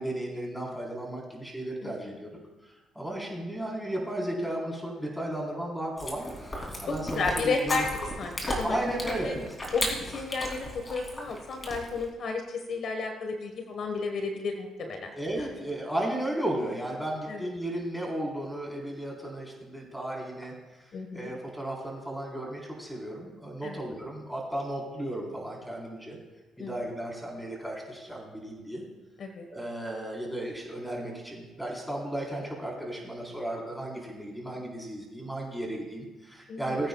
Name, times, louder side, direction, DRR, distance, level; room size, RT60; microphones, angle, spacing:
voice 1, 0.0-2.3 2.9-6.3 6.8-7.9 8.6-9.5 15.1-20.5 20.8-26.2 26.6-28.8 29.5-36.9, right 1 dB, ahead, -2 dB, 4.0 m, -34 dB
voice 2, 1.8-2.2 7.2-7.9 8.2-9.4 9.7-15.1 17.3-17.5 20.9-21.3 23.6-23.8 26.6-26.7 29.2-29.5 36.5-36.8, left 4 dB, 60° left, 4 dB, 1.3 m, -32 dB
Chewing mastication, 6.0-12.1, left 1 dB, 25° left, 3.0 m, -35 dB
21.5 x 9.0 x 2.3 m, 1.1 s
cardioid pair, 80°, 0 cm